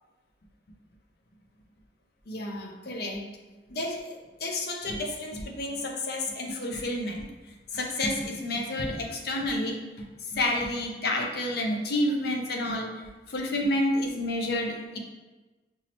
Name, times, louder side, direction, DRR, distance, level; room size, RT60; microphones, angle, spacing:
voice 1, 2.3-3.2 3.7-7.2 7.7-9.8 10.3-12.9 13.3-15.0, left 1 dB, 60° left, 2 dB, 0.5 m, -30 dB
5.3 x 2.0 x 2.9 m, 1.2 s
head